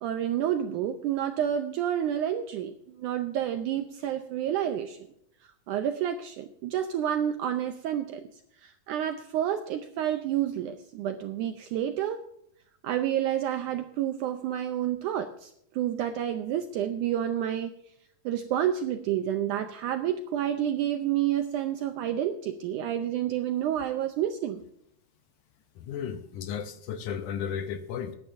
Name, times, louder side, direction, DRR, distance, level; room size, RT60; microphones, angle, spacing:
voice 1, 0.0-5.0 5.7-8.2 8.6-12.3 12.8-17.7 18.3-24.6, right 10 dB, 90° right, 7 dB, 1.8 m, -29 dB
voice 2, 25.8-28.2, left 8 dB, 75° left, 9 dB, 1.9 m, -34 dB
20.0 x 10.5 x 2.6 m, 0.73 s
omnidirectional pair, 4.2 m